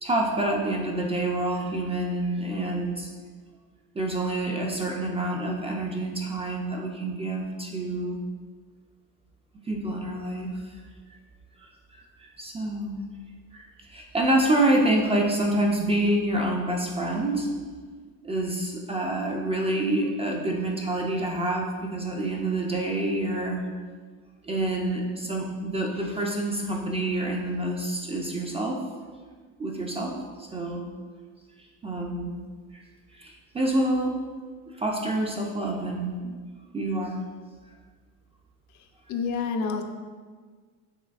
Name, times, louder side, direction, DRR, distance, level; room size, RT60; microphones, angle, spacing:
voice 1, 0.0-3.1 4.0-8.2 9.7-10.6 11.9-13.0 13.5-17.5 18.2-23.6 24.4-28.8 29.6-30.8 31.8-32.3 32.7-32.8 33.1-34.2 34.7-36.3 36.7-37.2, right 1 dB, 15° right, 0 dB, 0.4 m, -27 dB
voice 2, 39.1-39.8, left 5 dB, 55° left, 5 dB, 0.5 m, -28 dB
5.6 x 3.2 x 2.4 m, 1.5 s
cardioid pair, 110°, 36 cm